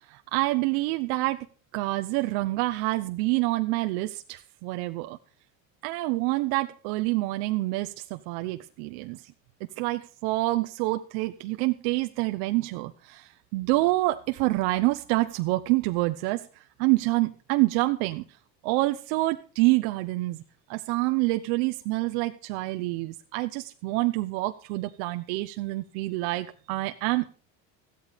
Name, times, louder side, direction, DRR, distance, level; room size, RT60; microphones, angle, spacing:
voice 1, 0.0-1.5 1.7-5.2 5.8-9.2 9.8-16.4 16.8-18.2 18.6-20.4 20.7-27.4, right 20 dB, 80° right, 7 dB, 1.0 m, -27 dB
14.5 x 12.5 x 5.2 m, 0.38 s
cardioid pair, 120°, 40 cm